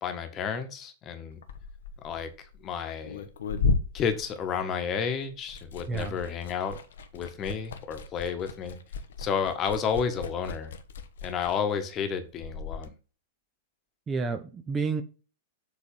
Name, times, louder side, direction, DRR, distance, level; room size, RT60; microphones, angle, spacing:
voice 1, 0.0-1.4 2.0-2.3 2.6-3.2 3.9-6.8 7.1-8.8 9.2-10.7 11.2-12.9, left 7 dB, 30° left, 1.4 m, -31 dB
Liquid, 1.3-5.0 5.3-12.9, left 4 dB, 65° left, 0.9 m, -35 dB
voice 2, 5.9-6.2 14.1-15.0, right 4 dB, 20° right, 0.8 m, -30 dB
7.4 x 3.9 x 5.4 m
figure-of-eight pair, 100°, 0 cm